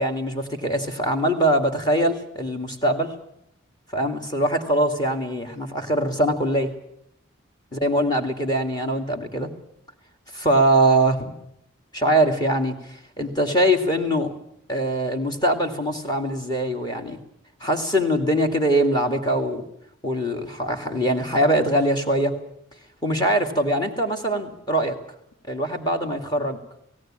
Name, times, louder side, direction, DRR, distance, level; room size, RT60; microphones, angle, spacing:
voice 1, 0.0-3.1 3.9-6.7 7.7-9.5 10.3-11.3 11.9-14.3 14.7-17.2 17.6-19.6 20.0-22.4 23.0-25.0 25.5-26.6, right 1 dB, 20° left, 5 dB, 2.2 m, -22 dB
17.5 x 17.5 x 8.8 m, 0.74 s
head